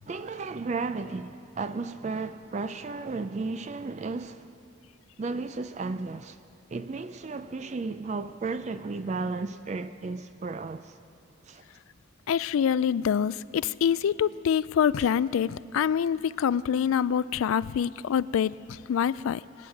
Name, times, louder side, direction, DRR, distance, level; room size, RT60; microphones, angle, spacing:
voice 1, 0.1-4.5 5.2-6.4 6.7-11.0 11.5-11.6 15.0-15.1, right 3 dB, 35° right, 0.3 m, -34 dB
voice 2, 12.3-19.4, left 8 dB, 75° left, 0.3 m, -26 dB
25.0 x 9.2 x 5.9 m
head